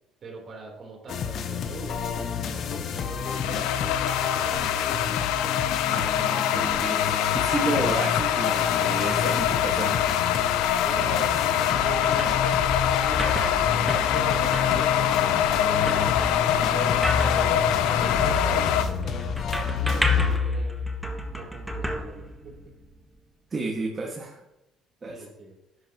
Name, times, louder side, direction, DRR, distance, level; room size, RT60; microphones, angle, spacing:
voice 1, 0.2-4.9 10.8-16.3 16.7-17.6 17.9-20.8 21.3-22.2 25.1-25.5, right 3 dB, 50° right, -1 dB, 3.9 m, -41 dB
sound 1, 1.1-20.4, left 7 dB, 60° left, 1.0 m, -31 dB
sound 2, 2.7-18.8, left 10 dB, 90° left, 0.6 m, -24 dB
voice 2, 5.9-7.0 7.3-10.0 11.0-11.1 23.5-24.3 25.0-25.2, right 2 dB, 30° right, -1 dB, 1.9 m, -31 dB
sound 3, 11.7-22.9, left 2 dB, ahead, 1.5 m, -30 dB
11.5 x 9.9 x 3.1 m, 0.87 s
cardioid pair, 100°, 0 cm